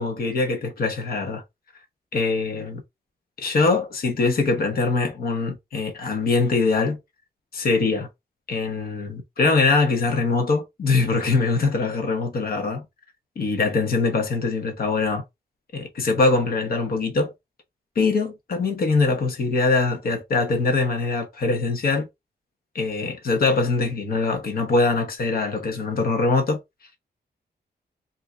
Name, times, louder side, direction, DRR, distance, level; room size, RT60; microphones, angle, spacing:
voice 1, 0.0-1.4 2.1-2.8 3.4-7.0 7.5-8.1 8.5-12.8 13.4-15.2 15.7-17.3 17.9-22.1 22.7-26.6, left 3 dB, 60° left, 1.2 m, -23 dB
3.7 x 2.7 x 3.6 m
wide cardioid pair, 165°, 17 cm